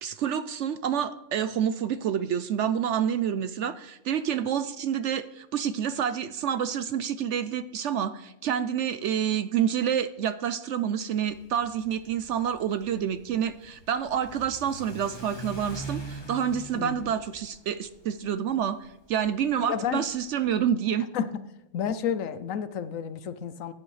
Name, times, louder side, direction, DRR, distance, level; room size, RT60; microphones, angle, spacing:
voice 1, 0.0-21.1, right 8 dB, 65° right, 12 dB, 0.8 m, -28 dB
Car / Accelerating revving vroom, 11.2-20.6, right 1 dB, 20° left, 1.1 m, -44 dB
voice 2, 19.7-20.0 21.1-21.4 21.7-23.7, left 8 dB, 70° left, 13 dB, 1.0 m, -30 dB
16.0 x 9.6 x 3.2 m, 0.85 s
omnidirectional pair, 1.5 m